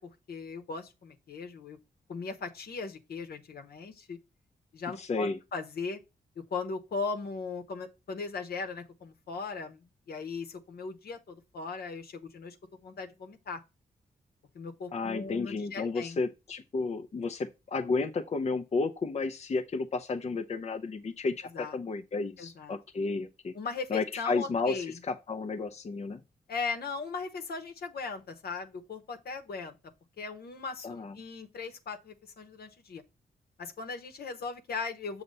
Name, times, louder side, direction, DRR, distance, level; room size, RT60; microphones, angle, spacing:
voice 1, 0.0-1.8 2.1-4.2 4.7-6.0 6.5-12.6 12.8-13.6 14.5-16.2 21.5-21.8 22.4-22.7 23.5-25.0 26.5-29.8 30.2-33.0 33.6-35.2, left 4 dB, 75° left, 1.0 m, -38 dB
voice 2, 5.0-5.4 14.9-23.5 23.9-26.2 30.8-31.1, left 4 dB, 45° left, 0.6 m, -32 dB
6.6 x 2.9 x 5.4 m
cardioid pair, 70°, 16 cm